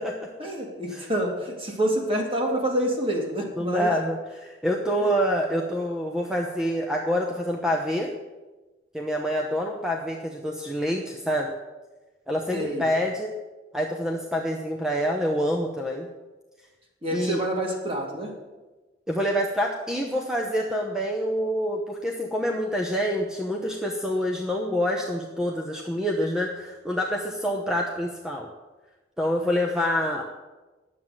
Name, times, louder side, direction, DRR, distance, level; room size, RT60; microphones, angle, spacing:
voice 1, 0.4-3.9 5.0-5.1 12.5-12.9 17.0-18.3, right 1 dB, 30° right, 0 dB, 2.3 m, -27 dB
voice 2, 3.6-8.1 8.9-11.5 12.3-13.3 13.7-16.1 17.1-17.4 19.1-28.5 29.2-30.3, equal, 5° right, 0 dB, 0.8 m, -26 dB
10.0 x 7.6 x 7.7 m, 1.2 s
head